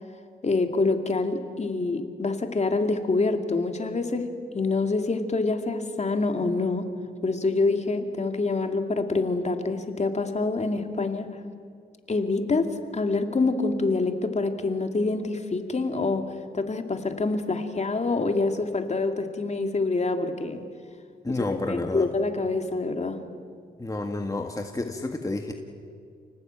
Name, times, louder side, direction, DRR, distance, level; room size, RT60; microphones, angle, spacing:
voice 1, 0.4-6.9 7.2-11.4 12.1-16.3 16.5-20.6 21.3-23.2, left 3 dB, 40° left, 6 dB, 2.5 m, -26 dB
voice 2, 21.2-22.1 23.8-25.5, left 2 dB, 20° left, 4 dB, 1.8 m, -30 dB
29.5 x 18.5 x 9.1 m, 2.2 s
cardioid pair, 85°, 18 cm